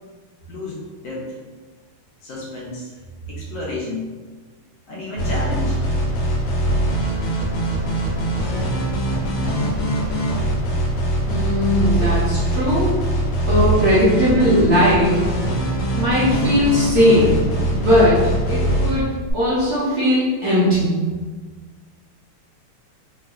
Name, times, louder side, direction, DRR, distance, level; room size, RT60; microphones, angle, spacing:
voice 1, 0.5-1.3 2.2-2.9 3.3-4.1 4.9-5.8, left 2 dB, 70° left, -4 dB, 1.1 m, -30 dB
sound 1, 5.2-19.3, right 1 dB, 90° left, 1.6 m, -22 dB
voice 2, 11.3-13.0 13.5-15.2 15.9-17.3 17.7-19.0 19.3-20.9, left 1 dB, 65° right, -10 dB, 0.9 m, -18 dB
3.6 x 2.4 x 2.4 m, 1.4 s
omnidirectional pair, 2.4 m